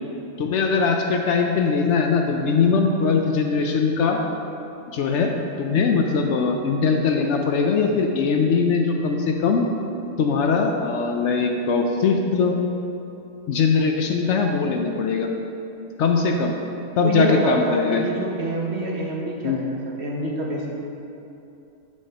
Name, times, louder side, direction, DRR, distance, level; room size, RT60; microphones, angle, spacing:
voice 1, 0.4-4.2 4.9-5.3 5.6-9.6 10.2-12.6 13.5-15.3 16.0-16.5 17.0-18.1 19.4-19.6, left 5 dB, 65° left, 3 dB, 0.8 m, -21 dB
voice 2, 17.0-20.7, right 1 dB, 55° right, -1 dB, 1.1 m, -26 dB
8.6 x 6.5 x 2.8 m, 2.8 s
omnidirectional pair, 1.4 m